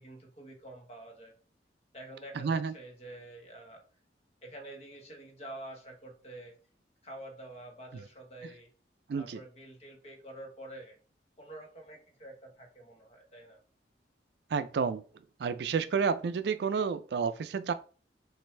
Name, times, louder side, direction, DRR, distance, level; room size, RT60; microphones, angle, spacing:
voice 1, 0.0-1.3 1.9-3.8 4.4-6.5 7.0-8.7 9.2-11.0 11.4-13.6, right 1 dB, 35° left, 1.1 m, -47 dB
voice 2, 2.4-2.7 9.1-9.4 14.5-15.0 15.4-17.7, right 5 dB, 65° right, 0.3 m, -30 dB
6.3 x 2.6 x 3.2 m
head